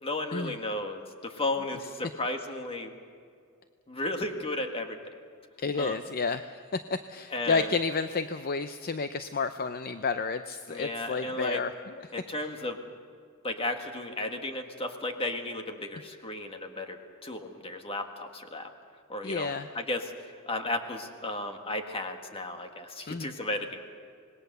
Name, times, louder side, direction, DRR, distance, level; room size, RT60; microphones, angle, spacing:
voice 1, 0.0-2.9 3.9-5.0 5.8-6.0 7.3-7.7 10.7-11.6 12.1-12.8 13.4-18.7 19.1-20.1 20.4-23.8, left 2 dB, 25° left, 5 dB, 1.8 m, -34 dB
voice 2, 5.6-6.6 6.9-12.0 19.2-19.7 23.1-23.3, left 4 dB, 45° left, 10 dB, 0.6 m, -31 dB
26.0 x 20.0 x 6.8 m, 2.2 s
head